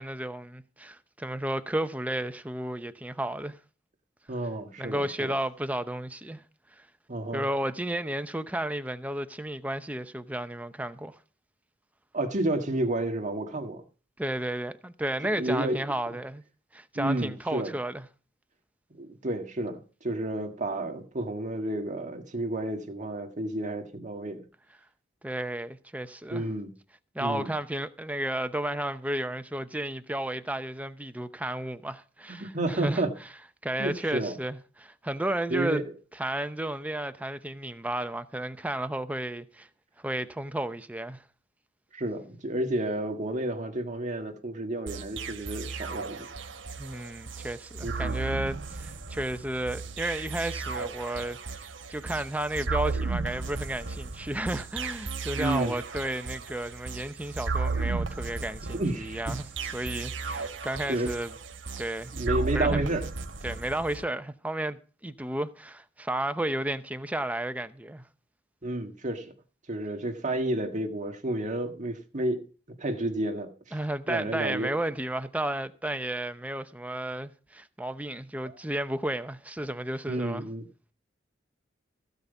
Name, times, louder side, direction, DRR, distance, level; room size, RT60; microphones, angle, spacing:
voice 1, 0.0-3.6 4.8-6.4 6.8-6.9 7.3-11.2 14.2-16.4 16.7-18.0 25.2-26.4 27.1-33.0 33.6-35.8 36.2-39.7 40.0-41.2 46.8-61.3 61.8-62.1 62.5-62.9 63.4-68.0 73.7-80.4, right 1 dB, 10° right, 0.8 m, -33 dB
voice 2, 4.3-5.3 7.1-7.5 12.1-13.8 15.4-15.8 16.9-17.7 19.0-24.4 26.3-26.7 27.2-27.5 32.4-33.1 33.8-34.4 35.5-35.8 41.9-46.3 47.8-48.2 55.4-55.7 58.7-59.4 60.9-61.1 62.1-63.1 68.6-69.3 69.7-72.4 72.8-73.5 74.1-74.7 78.4-78.5 80.1-80.7, right 1 dB, 40° right, 1.7 m, -31 dB
sound 1, 44.9-64.0, right 4 dB, 85° right, 1.2 m, -35 dB
15.5 x 5.2 x 8.1 m
head